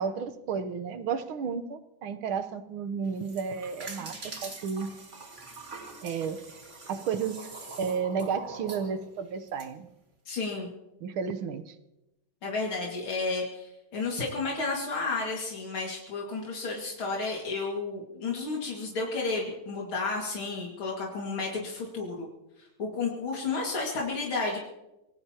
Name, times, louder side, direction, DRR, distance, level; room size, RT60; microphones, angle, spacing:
voice 1, 0.0-4.9 6.0-6.4 6.9-7.5 7.8-9.9 11.0-11.8, right 6 dB, 85° right, 11 dB, 1.8 m, -32 dB
sound 1, 3.1-9.7, right 3 dB, 35° right, 2.4 m, -44 dB
voice 2, 10.3-10.7 12.4-22.3 22.8-24.6, left 3 dB, 90° left, -2 dB, 3.1 m, -32 dB
26.0 x 19.0 x 2.9 m, 0.95 s
omnidirectional pair, 2.2 m